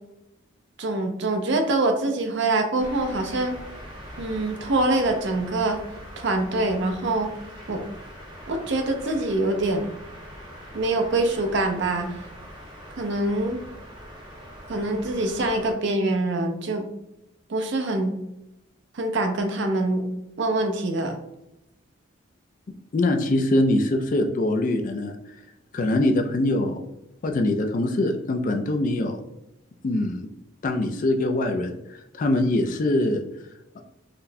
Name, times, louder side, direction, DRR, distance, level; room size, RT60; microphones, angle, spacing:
voice 1, 0.8-3.6 4.2-5.8 6.2-7.3 7.7-7.8 8.5-9.9 10.7-12.2 13.0-13.6 14.7-16.9 17.5-18.2 18.9-20.1 20.4-21.2, right 2 dB, 55° right, 5 dB, 0.5 m, -24 dB
sound 1, 2.8-15.7, equal, 20° right, 0.8 m, -42 dB
voice 2, 22.9-25.2 25.7-26.8 27.2-29.2 29.8-30.2 30.6-31.8 32.1-33.2 33.8-33.9, left 1 dB, 40° left, 4 dB, 0.3 m, -23 dB
3.9 x 2.2 x 2.6 m, 0.88 s
head